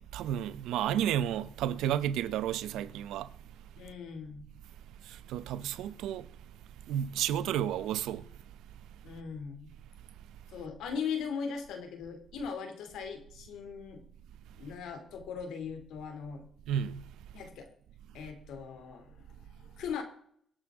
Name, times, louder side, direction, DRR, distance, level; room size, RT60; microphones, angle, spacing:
voice 1, 0.0-3.3 5.0-6.3 6.9-8.3 16.7-17.1, right 10 dB, 90° right, 0.8 m, -32 dB
voice 2, 3.8-4.4 9.0-9.7 10.5-14.0 14.5-16.4 17.3-17.7 18.1-20.0, left 6 dB, 85° left, 2.8 m, -39 dB
23.5 x 8.4 x 3.7 m
cardioid pair, 90°, 0 cm